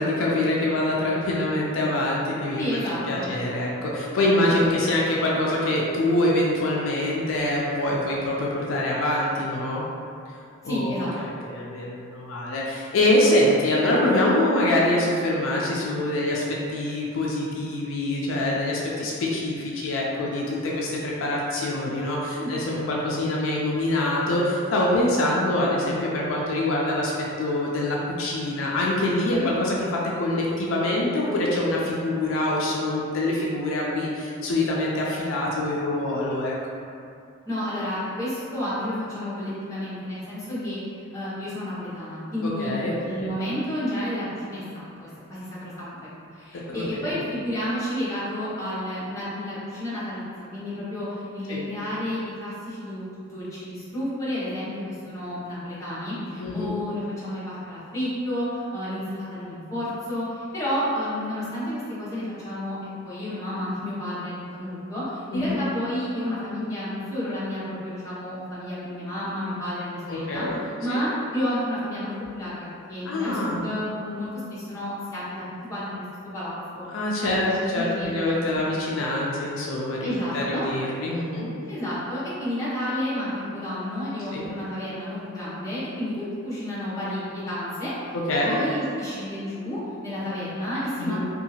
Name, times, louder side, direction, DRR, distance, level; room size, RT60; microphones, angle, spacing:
voice 1, 0.0-2.6 3.1-9.8 10.6-10.9 11.4-27.1 27.4-36.8 42.4-43.3 46.5-47.0 51.5-51.6 56.4-56.7 65.3-65.6 70.1-70.5 70.9-71.0 73.1-73.6 76.9-81.5 84.3-84.5 88.3-88.6 91.0-91.2, left 1 dB, 75° left, -4 dB, 0.4 m, -25 dB
voice 2, 2.6-3.3 4.5-4.6 10.6-11.1 22.4-22.5 29.3-29.5 37.4-40.8 41.1-42.7 43.0-46.0 46.3-62.8 63.0-70.4 70.8-75.4 75.7-76.0 76.3-76.8 77.2-78.6 80.0-80.7 81.7-88.1 88.5-91.2, left 1 dB, 15° left, -12 dB, 0.9 m, -31 dB
2.7 x 2.4 x 2.7 m, 2.4 s
head